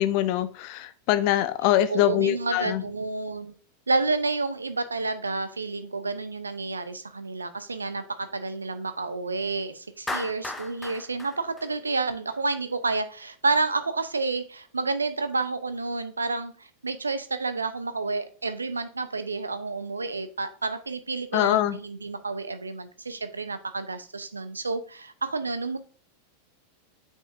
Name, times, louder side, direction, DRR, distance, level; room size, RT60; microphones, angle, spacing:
voice 1, 0.0-2.8 21.3-21.8, left 13 dB, 45° left, 13 dB, 0.6 m, -23 dB
voice 2, 1.9-3.5 3.9-25.8, right 3 dB, 75° right, 11 dB, 0.7 m, -30 dB
Clapping, 10.1-12.4, left 2 dB, 10° left, 1.0 m, -36 dB
9.2 x 5.4 x 2.6 m, 0.40 s
figure-of-eight pair, 90°, 0 cm